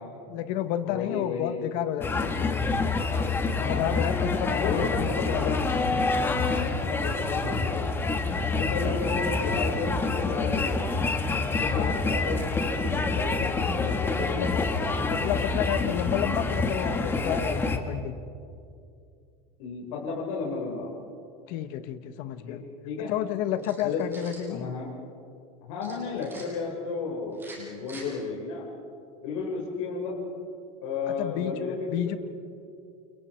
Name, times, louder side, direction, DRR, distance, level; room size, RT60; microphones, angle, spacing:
voice 1, 0.3-2.6 3.6-5.8 8.6-9.0 11.6-12.0 14.3-14.6 15.1-18.2 21.5-22.6 23.1-24.7 31.1-31.5 31.9-32.2, left 11 dB, 55° left, 10 dB, 1.4 m, -31 dB
voice 2, 0.8-1.6 3.5-4.0 4.6-5.6 6.8-7.9 8.5-10.8 11.5-14.8 19.6-20.9 22.5-23.1 23.8-24.0 24.5-24.9 25.7-28.7 29.2-30.2 30.8-32.1, left 4 dB, 80° left, -3 dB, 5.0 m, -33 dB
sound 1, 2.0-17.8, left 3 dB, 15° left, 1.5 m, -27 dB
sound 2, 23.6-24.5 25.8-26.4 27.3-28.1, right 2 dB, 15° right, 6.7 m, -46 dB
30.0 x 29.0 x 4.7 m, 2.5 s
supercardioid pair, 160°, 17 cm